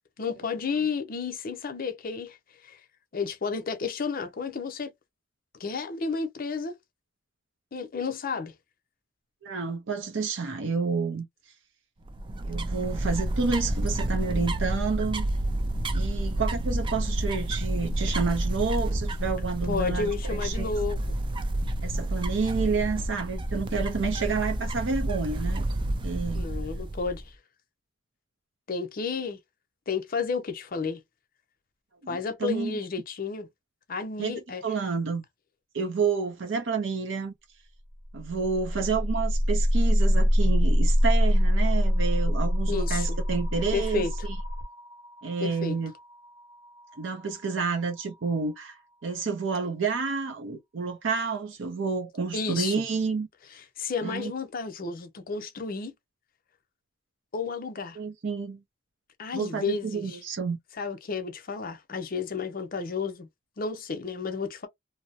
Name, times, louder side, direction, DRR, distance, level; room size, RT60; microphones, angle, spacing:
voice 1, 0.2-2.4 2.6-2.8 3.1-4.9 5.6-6.7 7.7-8.5 19.6-21.0 26.3-27.2 28.7-29.4 29.9-31.0 32.1-33.5 33.9-34.6 42.7-43.2 43.7-44.1 45.4-45.8 52.3-52.8 53.8-55.9 57.3-58.0 59.2-60.2 60.8-63.3 63.6-64.7, left 5 dB, 50° left, 0.6 m, -31 dB
voice 2, 9.4-11.3 12.4-15.3 15.9-20.7 21.8-25.7 26.0-26.5 32.1-32.8 34.2-35.2 35.7-37.3 38.1-44.1 45.2-45.9 47.0-53.3 54.0-54.3 58.0-58.6 59.3-60.6, right 5 dB, 80° right, 0.6 m, -29 dB
sound 1, 12.0-27.3, right 1 dB, 25° right, 0.4 m, -29 dB
sound 2, 38.1-48.0, equal, 40° right, 0.9 m, -25 dB
2.6 x 2.0 x 2.7 m
head